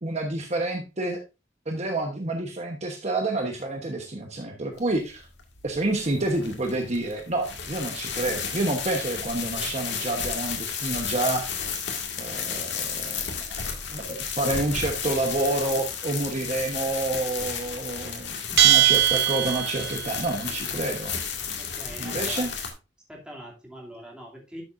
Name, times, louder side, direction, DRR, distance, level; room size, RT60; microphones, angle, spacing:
voice 1, 0.0-1.2 1.7-5.3 5.6-11.5 12.2-13.4 13.9-21.1 22.0-22.5, right 2 dB, 35° right, 3 dB, 1.1 m, -28 dB
sound 1, 4.8-22.7, left 6 dB, 70° left, 1.9 m, -33 dB
Bell, 18.6-20.1, right 13 dB, 65° right, 0.8 m, -20 dB
voice 2, 21.6-22.5 23.1-24.6, equal, 5° right, -2 dB, 2.7 m, -42 dB
12.0 x 6.8 x 2.6 m, 0.29 s
head